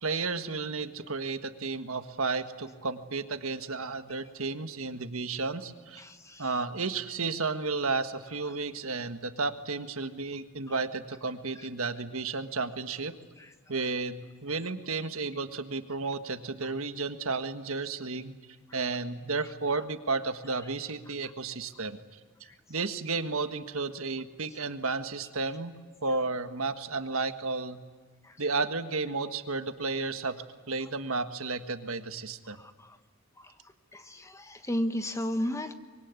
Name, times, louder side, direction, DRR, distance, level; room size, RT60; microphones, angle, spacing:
voice 1, 0.0-6.0 6.4-13.1 13.7-18.3 18.7-22.0 22.7-25.7 26.0-27.8 28.4-32.6, right 3 dB, 70° right, 9 dB, 1.6 m, -32 dB
voice 2, 6.0-6.4 32.6-32.7 33.9-35.7, equal, 15° left, 8 dB, 1.2 m, -33 dB
25.0 x 23.0 x 9.7 m, 1.4 s
head